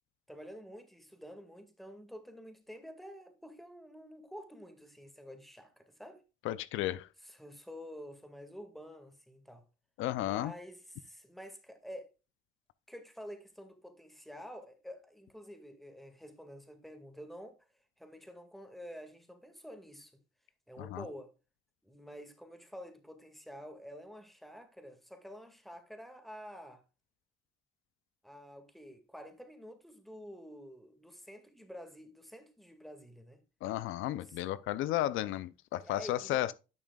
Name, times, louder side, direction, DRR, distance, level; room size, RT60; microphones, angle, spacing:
voice 1, 0.3-6.2 7.2-9.6 10.2-12.1 12.9-17.6 18.0-20.2 20.7-21.3 21.8-26.8 28.2-33.4 34.1-34.8 35.8-36.5, equal, ahead, 1.9 m, -49 dB
voice 2, 6.4-7.1 10.0-10.5 20.8-21.0 33.6-36.5, left 14 dB, 90° left, 0.5 m, -33 dB
10.5 x 6.1 x 2.3 m
cardioid pair, 90°, 20 cm